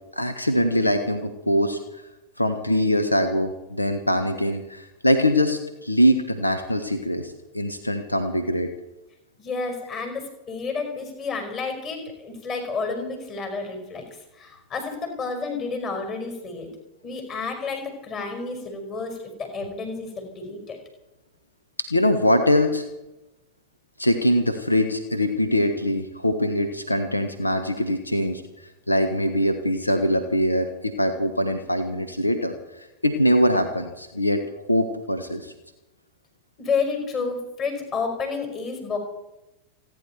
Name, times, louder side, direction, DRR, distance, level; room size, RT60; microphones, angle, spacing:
voice 1, 0.1-1.8 2.4-8.7 21.9-22.8 24.0-28.4 28.9-32.5 33.0-34.4 34.7-35.5, equal, 85° left, 9 dB, 1.2 m, -22 dB
voice 2, 9.4-16.7 17.0-20.8 36.6-39.0, left 4 dB, 30° left, 5 dB, 5.2 m, -30 dB
29.0 x 10.5 x 4.6 m, 0.97 s
figure-of-eight pair, 90°, 0 cm